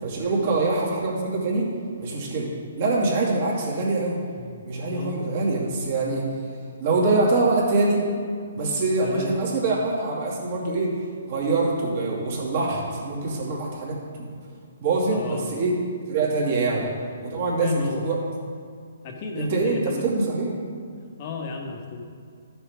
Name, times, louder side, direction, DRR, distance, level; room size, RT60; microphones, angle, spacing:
voice 1, 0.0-1.7 2.0-2.5 2.8-4.2 4.6-6.3 6.8-8.0 8.5-10.9 11.2-14.3 14.8-15.7 16.1-16.8 17.2-18.2 19.3-20.5, right 3 dB, 45° right, -4 dB, 2.3 m, -24 dB
voice 2, 4.3-4.6 4.9-5.1 9.0-9.3 15.1-15.5 16.7-16.9 17.6-18.0 19.0-20.1 21.2-22.1, left 4 dB, 35° left, 2 dB, 1.3 m, -34 dB
11.0 x 6.8 x 3.6 m, 2.2 s
hypercardioid pair, 150°, 0 cm